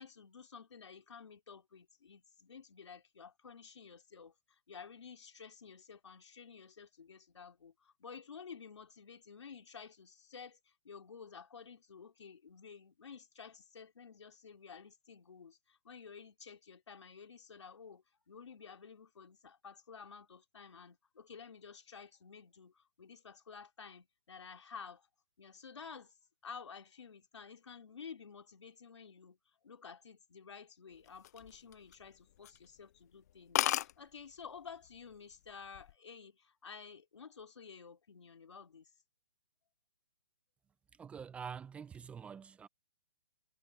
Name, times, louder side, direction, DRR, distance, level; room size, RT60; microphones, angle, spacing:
voice 1, 0.0-25.1 25.4-26.2 26.4-38.9, left 6 dB, 85° left, 2.9 m, -52 dB
sound 1, 31.1-32.1 32.4-32.7 33.0-33.1 33.3-33.4 33.6-33.9 34.8-35.1 35.5-35.9, left 13 dB, 40° left, 0.4 m, -33 dB
voice 2, 41.0-42.7, right 7 dB, 10° right, 0.6 m, -46 dB
hypercardioid pair, 155°, 14 cm